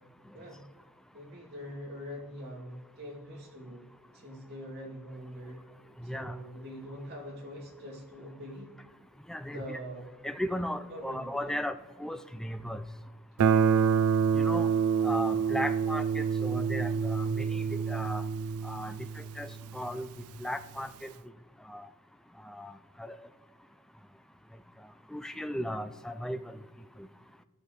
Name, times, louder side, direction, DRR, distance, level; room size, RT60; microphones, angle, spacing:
voice 1, 1.1-3.8 4.1-5.6 6.0-8.7 9.5-10.1 10.9-11.6, equal, 50° right, -4 dB, 3.0 m, -43 dB
voice 2, 9.3-9.8 10.2-12.8 14.3-14.7 15.0-18.2 18.6-18.9 19.4-20.1 20.4-21.1 21.7-21.9 22.5-22.7 23.0-23.1 25.1-26.4, equal, ahead, 10 dB, 0.4 m, -36 dB
Guitar, 13.4-20.1, right 6 dB, 80° right, 0.4 m, -27 dB
17.5 x 6.7 x 3.2 m, 1.5 s
head